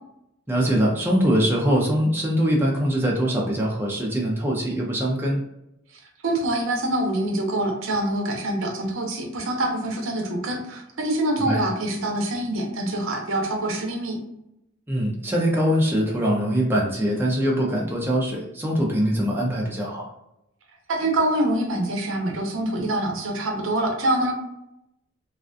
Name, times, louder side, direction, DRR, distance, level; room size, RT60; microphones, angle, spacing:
voice 1, 0.5-5.4 11.4-11.6 14.9-20.1, equal, 10° right, -2 dB, 0.4 m, -22 dB
voice 2, 6.2-14.2 20.9-24.3, right 1 dB, 75° right, 1 dB, 0.6 m, -25 dB
2.4 x 2.2 x 2.5 m, 0.84 s
head